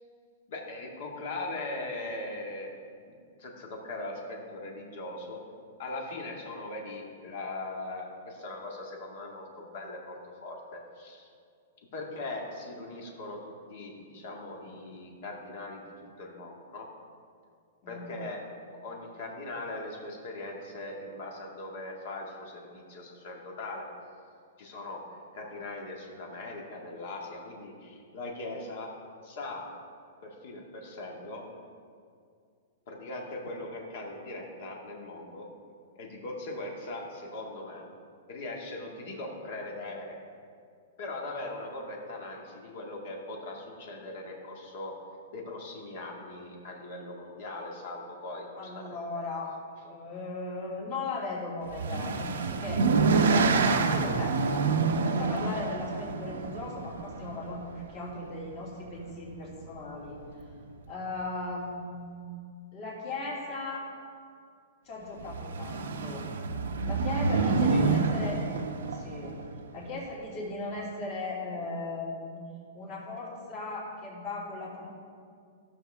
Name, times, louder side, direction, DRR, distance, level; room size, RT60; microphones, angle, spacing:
voice 1, 0.5-2.7 3.4-5.4 5.8-10.2 10.4-11.3 11.9-13.4 13.7-16.9 17.9-18.4 18.7-23.9 24.6-25.0 25.3-28.9 29.2-29.7 30.2-31.4 32.9-35.5 35.9-37.9 38.3-40.2 41.0-44.9 45.3-49.2 67.3-67.8, left 2 dB, 50° left, 0 dB, 1.9 m, -40 dB
voice 2, 17.8-18.1 48.6-49.5 49.8-60.2 60.9-62.3 62.7-63.9 64.8-66.2 66.8-68.4 68.9-69.4 69.7-72.5 72.7-74.9, left 2 dB, 35° left, -4 dB, 2.7 m, -37 dB
sound 1, 51.7-57.8 58.9-59.3 59.6-59.7 60.0-60.1 65.2-69.6, right 4 dB, 90° right, 0.8 m, -27 dB
15.0 x 6.5 x 3.5 m, 2.3 s
hypercardioid pair, 165°, 0 cm